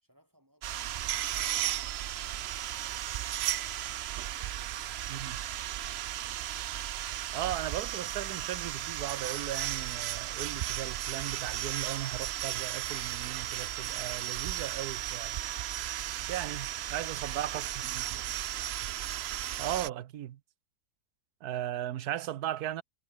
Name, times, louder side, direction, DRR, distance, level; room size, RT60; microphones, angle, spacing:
voice 1, 0.0-0.1, equal, 10° right, 4.6 m, -69 dB
sound 1, 0.6-19.9, right 12 dB, 70° right, 0.6 m, -35 dB
voice 2, 7.3-15.4 16.2-18.2 19.6-20.4 21.4-22.8, right 12 dB, 85° right, 1.3 m, -37 dB
omnidirectional pair, 1.6 m